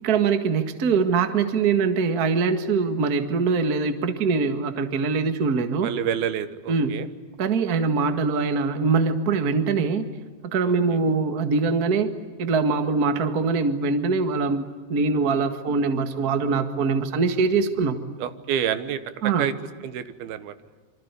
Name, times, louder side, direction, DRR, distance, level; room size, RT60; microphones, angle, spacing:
voice 1, 0.0-5.9 6.7-7.0 7.4-10.0 10.4-12.1 12.4-18.0 19.2-19.5, right 4 dB, 50° right, 8 dB, 1.0 m, -23 dB
voice 2, 5.8-7.1 18.2-19.0 19.4-19.5 19.8-20.5, right 9 dB, 70° right, 12 dB, 2.9 m, -28 dB
27.0 x 25.0 x 8.3 m, 1.4 s
omnidirectional pair, 4.9 m